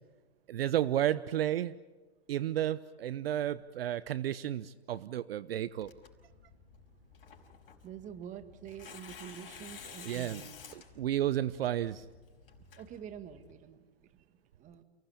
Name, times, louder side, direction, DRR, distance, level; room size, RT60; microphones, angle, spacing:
voice 1, 0.5-1.7 2.3-5.9 10.0-10.4 10.7-12.0, right 12 dB, 60° right, 17 dB, 0.8 m, -32 dB
Tearing, 5.8-13.6, left 6 dB, 60° left, 5.2 m, -52 dB
voice 2, 7.8-10.5 12.8-13.9 14.6-14.8, right 9 dB, 20° right, 10 dB, 1.7 m, -46 dB
29.5 x 17.5 x 8.5 m, 1.3 s
hypercardioid pair, 130°, 33 cm